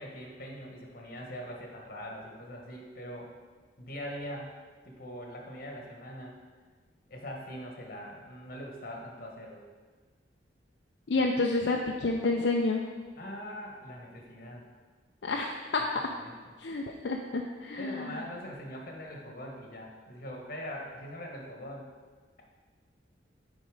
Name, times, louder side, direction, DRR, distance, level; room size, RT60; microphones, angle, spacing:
voice 1, 0.0-3.3 3.8-4.5 4.8-6.4 7.1-9.6 13.2-14.7 16.2-16.4 17.8-21.9, equal, 55° left, 0 dB, 1.3 m, -42 dB
voice 2, 11.1-12.8 15.2-15.9 16.6-18.1, left 3 dB, 70° left, 1 dB, 0.5 m, -29 dB
8.8 x 4.1 x 4.8 m, 1.4 s
head